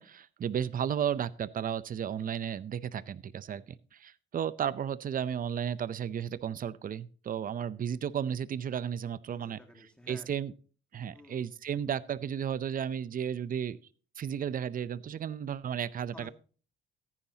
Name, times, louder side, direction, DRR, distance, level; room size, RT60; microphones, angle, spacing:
voice 1, 0.0-9.6 10.1-10.5 10.9-13.8 14.2-16.3, right 8 dB, 45° right, 18 dB, 0.6 m, -34 dB
voice 2, 9.3-10.3 11.1-11.5 16.1-16.3, left 1 dB, 5° left, 4 dB, 2.1 m, -52 dB
14.5 x 9.9 x 2.8 m, 0.38 s
cardioid pair, 90°, 20 cm